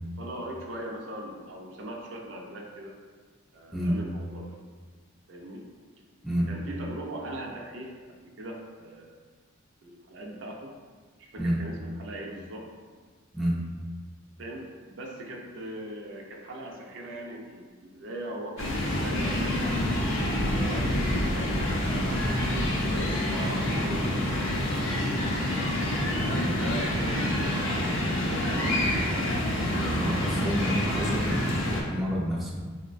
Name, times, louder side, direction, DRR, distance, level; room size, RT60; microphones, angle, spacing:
voice 1, 0.2-3.0 3.5-4.6 5.3-5.7 6.5-9.2 9.8-10.7 11.2-12.7 14.4-20.1 20.6-22.3 22.8-24.8 26.1-27.7 28.3-29.3 29.7-30.0, right 1 dB, 65° right, 0 dB, 0.4 m, -40 dB
sound 1, 18.6-31.8, left 1 dB, 70° left, 0.5 m, -27 dB
voice 2, 29.9-32.6, equal, ahead, -6 dB, 0.4 m, -29 dB
3.7 x 2.1 x 2.4 m, 1.5 s
head